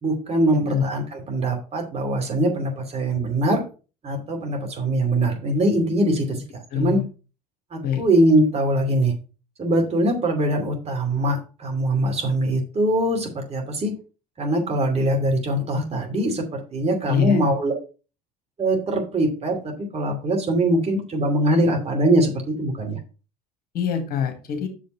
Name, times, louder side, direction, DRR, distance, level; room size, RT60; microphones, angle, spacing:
voice 1, 0.0-3.6 4.0-6.4 6.7-7.0 7.7-9.1 9.6-13.9 14.4-17.7 18.6-23.0, right 1 dB, 30° right, 2 dB, 2.7 m, -22 dB
voice 2, 6.7-7.0 7.8-8.0 17.1-17.4 23.7-24.7, left 8 dB, 50° left, 5 dB, 1.8 m, -24 dB
6.7 x 5.1 x 5.4 m, 0.34 s
figure-of-eight pair, 60°, 20 cm